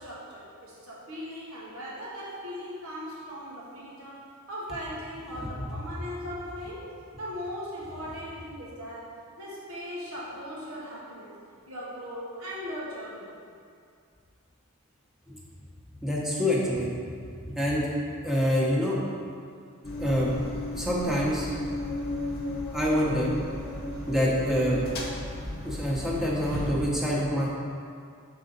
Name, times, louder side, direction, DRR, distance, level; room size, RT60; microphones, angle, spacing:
voice 1, 0.0-6.9 7.2-11.4 11.7-13.4 23.9-24.1, equal, 80° right, -5 dB, 1.4 m, -39 dB
voice 2, 16.0-16.9 17.5-17.8 18.2-19.0 20.0-20.3 20.7-21.5 22.7-23.3 24.1-24.8 25.6-27.5, equal, ahead, -6 dB, 1.0 m, -26 dB
sound 1, 19.8-26.7, left 1 dB, 45° left, 0.9 m, -34 dB
6.5 x 4.0 x 3.9 m, 2.3 s
head